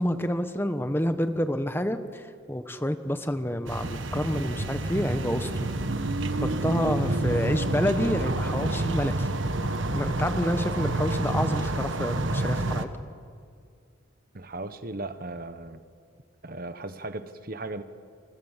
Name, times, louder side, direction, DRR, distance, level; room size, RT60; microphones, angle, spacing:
voice 1, 0.0-5.7 6.4-9.3 9.9-12.9, equal, 10° left, 9 dB, 1.1 m, -28 dB
sound 1, 3.7-12.9, right 2 dB, 65° right, 1.4 m, -28 dB
voice 2, 14.3-15.8 16.4-17.8, right 2 dB, 45° right, 11 dB, 1.1 m, -37 dB
28.5 x 28.0 x 7.4 m, 2.2 s
head